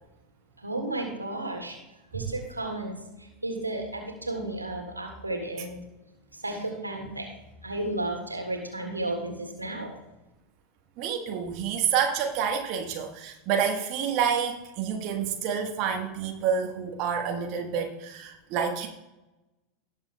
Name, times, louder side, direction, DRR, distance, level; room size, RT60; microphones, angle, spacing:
voice 1, 0.6-1.8 2.1-5.8 6.3-7.3 7.6-10.0, right 2 dB, 85° right, 2 dB, 1.6 m, -33 dB
voice 2, 11.0-18.9, right 7 dB, 45° right, 2 dB, 1.2 m, -28 dB
18.0 x 7.3 x 2.2 m, 0.98 s
figure-of-eight pair, 80°, 0 cm